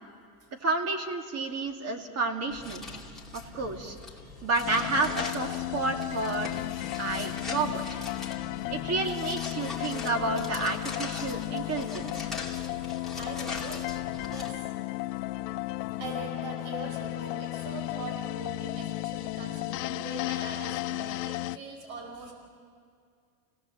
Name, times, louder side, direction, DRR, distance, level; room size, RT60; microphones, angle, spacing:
voice 1, 0.6-2.9 3.3-4.0 4.4-6.6 7.0-7.8 8.7-12.3, right 3 dB, 30° right, 5 dB, 2.3 m, -30 dB
voice 2, 1.4-1.8 3.4-3.6 4.0-4.4 11.3-11.9 12.3-12.8 13.2-14.6 15.2-15.3 16.0-22.3, right 3 dB, 65° right, 2 dB, 5.3 m, -43 dB
sound 1, 2.5-14.5, left 3 dB, ahead, 2.7 m, -41 dB
sound 2, 4.6-21.6, left 19 dB, 80° left, 0.8 m, -34 dB
29.0 x 17.5 x 7.7 m, 2.2 s
supercardioid pair, 140°, 48 cm